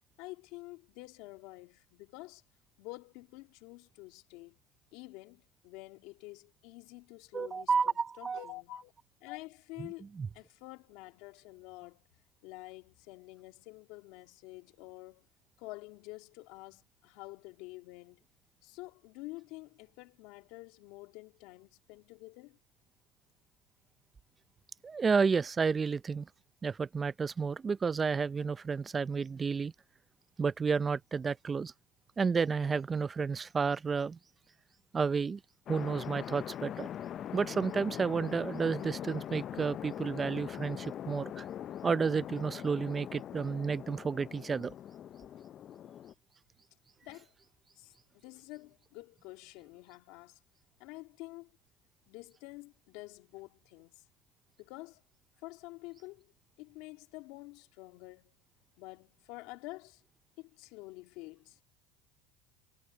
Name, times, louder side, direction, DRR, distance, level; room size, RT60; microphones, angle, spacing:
voice 1, 0.2-2.4 2.8-4.6 4.9-8.9 9.2-10.1 10.3-12.0 12.4-15.3 15.6-18.2 18.6-22.6 47.0-47.3 47.8-50.4 50.8-51.5 52.1-54.0 54.6-55.0 55.4-56.3 56.6-58.3 58.8-60.0 60.4-61.6, left 22 dB, 70° left, 2.1 m, -48 dB
voice 2, 7.3-8.4 10.2-10.3 24.8-26.3 26.6-29.7 30.4-31.7 32.2-34.2 34.9-35.4 35.7-36.9 37.3-41.5 41.8-44.7, right 5 dB, 25° right, 0.4 m, -31 dB
sound 1, 35.7-46.1, left 10 dB, 45° left, 0.5 m, -42 dB
supercardioid pair, 100°, 0 cm